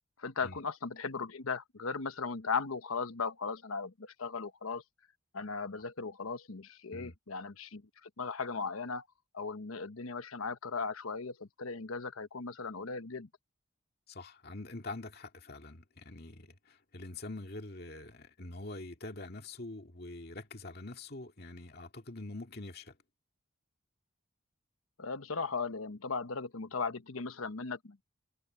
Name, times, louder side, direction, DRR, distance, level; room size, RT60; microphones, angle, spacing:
voice 1, 0.2-4.8 5.3-9.1 9.3-13.3 25.0-28.0, left 4 dB, 90° left, 1.1 m, -37 dB
voice 2, 14.1-23.0, left 2 dB, 50° left, 2.2 m, -45 dB
head